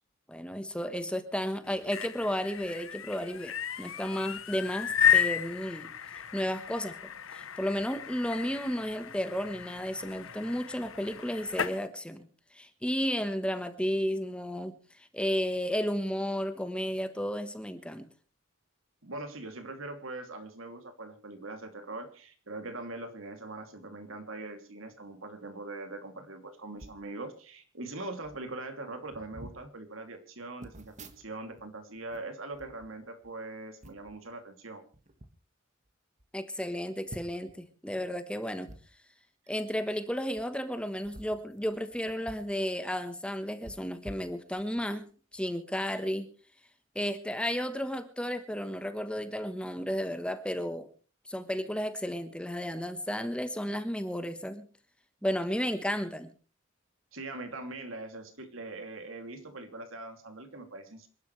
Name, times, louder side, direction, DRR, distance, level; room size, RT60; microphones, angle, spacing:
voice 1, 0.3-5.9 6.3-12.3 12.5-14.7 15.0-18.1 36.3-38.7 39.5-45.1 45.3-46.3 46.9-50.9 51.3-54.7 55.2-56.3, equal, 5° left, 9 dB, 1.2 m, -33 dB
sound 1, 1.7-11.8, left 8 dB, 80° left, 1.0 m, -33 dB
voice 2, 19.0-34.8 57.1-61.1, right 2 dB, 80° right, 6 dB, 2.8 m, -42 dB
sound 2, 26.8-27.1 27.9-28.0 28.2-28.5 29.1-29.6 30.6-31.6 31.9-33.3 33.8-34.2 34.9-35.3 35.9-36.0 36.2-36.3 37.1-37.6 38.6-38.8 40.2-40.4 41.0-42.5 42.8-42.9 43.6-44.8 45.3-45.5, right 1 dB, 35° right, 1.6 m, -49 dB
27.0 x 11.5 x 3.3 m, 0.38 s
head